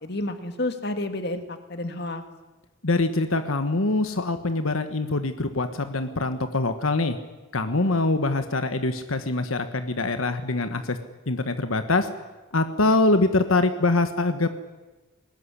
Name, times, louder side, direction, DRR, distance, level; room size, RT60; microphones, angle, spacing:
voice 1, 0.0-2.2, left 1 dB, 50° left, 8 dB, 2.1 m, -30 dB
voice 2, 2.8-7.2 7.5-11.0 11.3-12.1 12.5-14.5, left 2 dB, 85° left, 9 dB, 1.4 m, -24 dB
22.5 x 19.5 x 9.9 m, 1.2 s
head